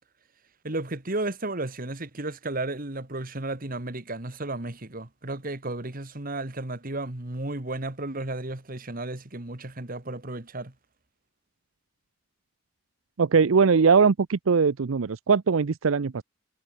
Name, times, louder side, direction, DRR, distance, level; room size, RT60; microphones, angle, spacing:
voice 1, 0.6-10.7, right 2 dB, 45° right, 2.1 m, -33 dB
voice 2, 13.2-16.2, right 5 dB, 85° right, 0.6 m, -21 dB
head